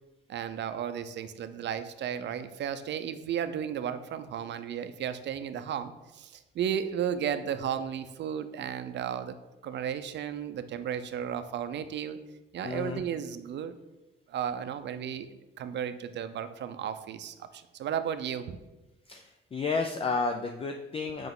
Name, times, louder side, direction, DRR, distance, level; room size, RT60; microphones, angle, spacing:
voice 1, 0.3-9.3 9.6-12.2 12.5-13.8 14.3-15.3 15.6-18.6, right 8 dB, 65° right, 11 dB, 0.5 m, -34 dB
voice 2, 12.6-13.0 19.1-21.3, left 4 dB, 30° left, 4 dB, 0.4 m, -32 dB
5.7 x 5.0 x 3.7 m, 1.1 s
cardioid pair, 90°, 20 cm